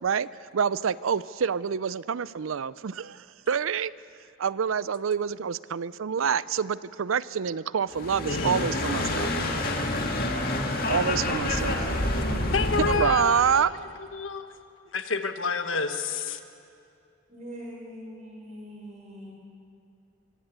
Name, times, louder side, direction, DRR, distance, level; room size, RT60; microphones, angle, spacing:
voice 1, 0.0-3.9 4.4-9.3 10.9-13.7, right 7 dB, 85° right, 19 dB, 0.5 m, -27 dB
sound 1, 7.9-13.1, left 2 dB, 45° left, 2.2 m, -28 dB
voice 2, 8.3-8.7 12.5-13.7 14.1-14.5 14.9-16.4, left 4 dB, 75° left, 8 dB, 1.3 m, -29 dB
voice 3, 17.3-19.3, equal, 35° right, -2 dB, 6.1 m, -42 dB
23.5 x 17.0 x 8.1 m, 2.4 s
head